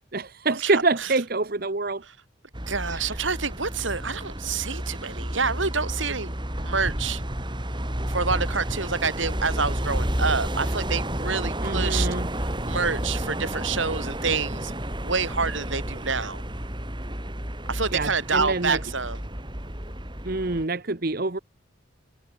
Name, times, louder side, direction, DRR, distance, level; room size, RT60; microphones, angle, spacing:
voice 1, 0.1-2.0 2.9-3.2 11.6-12.3 17.9-18.8 20.2-21.4, right 3 dB, 50° right, 1.2 m, -26 dB
voice 2, 0.6-1.1 2.7-6.3 6.6-7.2 8.1-12.1 12.4-14.7 15.0-16.4 17.7-19.2, right 5 dB, 75° right, 3.9 m, -27 dB
sound 1, 2.5-20.6, equal, 25° right, 6.3 m, -31 dB
head